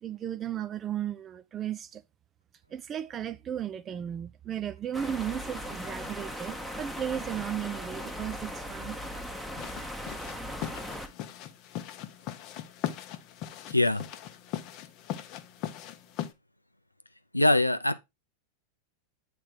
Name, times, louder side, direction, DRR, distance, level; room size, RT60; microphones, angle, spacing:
voice 1, 0.0-2.0 2.7-9.0, right 10 dB, 25° right, 0.6 m, -35 dB
sound 1, 4.9-11.1, equal, ahead, 0.9 m, -38 dB
sound 2, 9.6-16.3, left 11 dB, 40° left, 0.8 m, -39 dB
voice 2, 13.7-14.1 17.3-18.0, left 1 dB, 85° left, 0.5 m, -23 dB
8.7 x 3.5 x 4.5 m
figure-of-eight pair, 90°, 0 cm